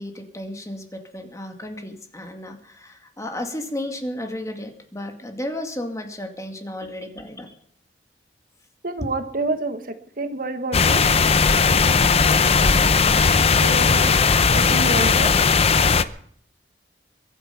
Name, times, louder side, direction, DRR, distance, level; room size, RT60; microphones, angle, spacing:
voice 1, 0.0-7.5 9.0-9.2, left 1 dB, 20° left, 5 dB, 2.2 m, -33 dB
voice 2, 8.8-11.0 13.6-14.1 14.5-15.3, right 2 dB, 55° right, 8 dB, 1.3 m, -28 dB
sound 1, 10.7-16.0, left 5 dB, 35° left, 0.7 m, -17 dB
22.5 x 9.1 x 5.8 m, 0.64 s
head